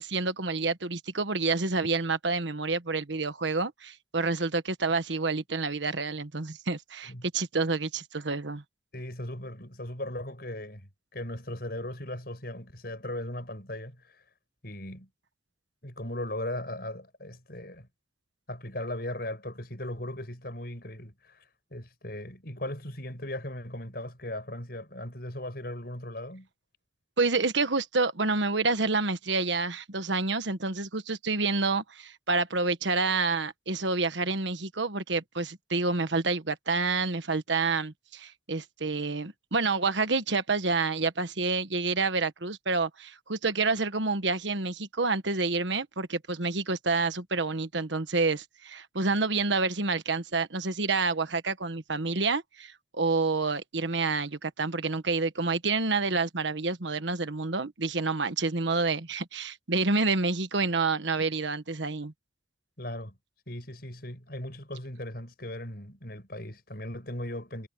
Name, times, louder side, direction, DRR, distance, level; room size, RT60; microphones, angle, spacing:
voice 1, 0.0-8.6 27.2-62.1, right 3 dB, 75° right, 1.4 m, -28 dB
voice 2, 8.9-14.2 14.6-15.1 15.8-17.9 18.5-26.5 62.8-63.2 63.5-67.7, left 1 dB, 55° left, 7.0 m, -38 dB
head